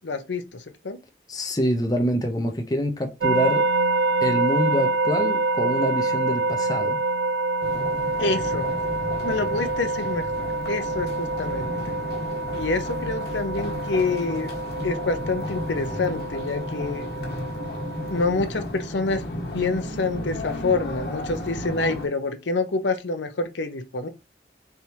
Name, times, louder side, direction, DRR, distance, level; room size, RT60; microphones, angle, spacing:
voice 1, 0.0-1.0 8.2-8.7 9.2-12.0 12.5-14.5 14.8-17.1 18.1-19.2 19.5-24.1, left 3 dB, 80° left, 0.7 m, -27 dB
voice 2, 1.3-3.7 4.2-7.0, equal, 20° left, 0.6 m, -26 dB
sound 1, 3.2-18.2, right 3 dB, 80° right, 0.4 m, -26 dB
sound 2, 7.6-22.1, left 1 dB, 60° left, 1.4 m, -33 dB
4.3 x 3.5 x 2.8 m
head